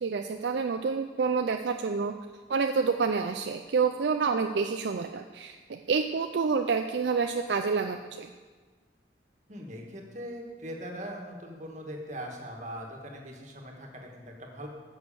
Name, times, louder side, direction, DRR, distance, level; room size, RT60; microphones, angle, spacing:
voice 1, 0.0-2.1 2.5-8.3, right 5 dB, 70° right, 6 dB, 0.4 m, -28 dB
voice 2, 9.5-14.7, equal, 40° right, 1 dB, 1.6 m, -41 dB
10.0 x 6.5 x 6.9 m, 1.4 s
head